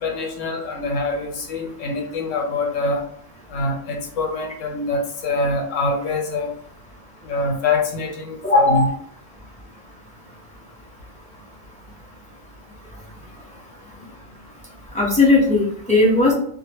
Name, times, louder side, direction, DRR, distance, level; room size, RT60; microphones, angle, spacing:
voice 1, 0.0-3.0 3.5-6.5 7.2-8.4 8.7-8.9, left 3 dB, 80° left, 1 dB, 1.0 m, -24 dB
voice 2, 8.4-8.9 14.9-16.3, left 2 dB, 10° left, -5 dB, 0.5 m, -16 dB
2.1 x 2.0 x 3.3 m, 0.62 s
omnidirectional pair, 1.3 m